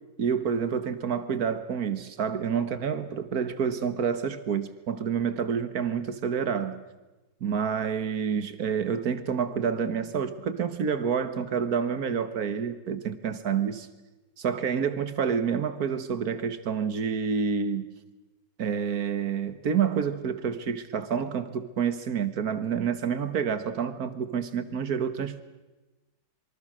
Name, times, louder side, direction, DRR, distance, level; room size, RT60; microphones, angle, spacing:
voice 1, 0.2-6.8 7.4-13.9 14.4-18.0 18.6-25.4, right 7 dB, 50° right, 11 dB, 1.8 m, -28 dB
26.5 x 24.0 x 6.4 m, 1.1 s
omnidirectional pair, 2.3 m